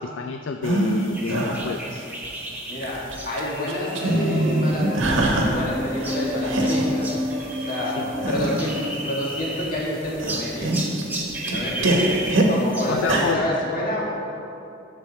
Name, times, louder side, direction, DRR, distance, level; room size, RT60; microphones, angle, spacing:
voice 1, 0.0-2.1 8.0-8.3 12.9-13.4, left 5 dB, 65° left, 6 dB, 0.3 m, -29 dB
sound 1, 0.6-1.0 1.3-2.3 2.7-3.4 3.7-5.7 6.0-6.9 7.4-7.5 8.1-8.8 9.4-9.8 10.1-12.5 13.0-13.3, right 1 dB, 75° right, 1.3 m, -24 dB
sound 2, 1.1-8.0 8.2-9.9 10.3-13.0, right 2 dB, 10° right, 1.1 m, -34 dB
voice 2, 2.7-7.1 7.5-10.7 11.4-12.1 12.5-14.0, left 1 dB, 45° left, -5 dB, 2.0 m, -28 dB
sound 3, 3.7-8.9, equal, 25° right, 0.8 m, -30 dB
11.0 x 6.8 x 4.1 m, 2.7 s
head